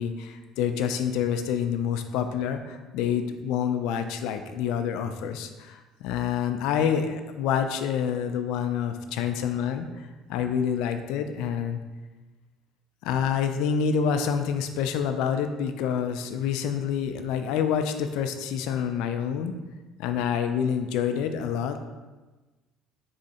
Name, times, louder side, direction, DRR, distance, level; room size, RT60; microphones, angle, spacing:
voice 1, 0.0-11.8 13.0-19.5 20.0-21.8, left 7 dB, 80° left, 8 dB, 0.4 m, -27 dB
3.6 x 3.2 x 4.0 m, 1.2 s
cardioid pair, 105°, 0 cm